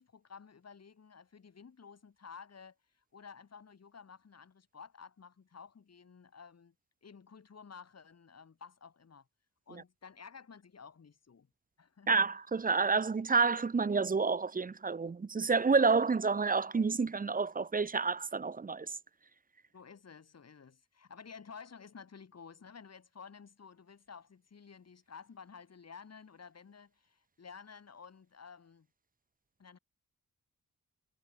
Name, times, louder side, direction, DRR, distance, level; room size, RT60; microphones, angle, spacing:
voice 1, 0.0-2.8 3.1-6.7 7.0-9.3 9.7-11.5 11.8-12.2 19.7-28.9 29.6-29.8, left 6 dB, 50° left, 2.5 m, -53 dB
voice 2, 12.1-18.9, right 4 dB, 25° right, 0.6 m, -29 dB
wide cardioid pair, 100°, 34 cm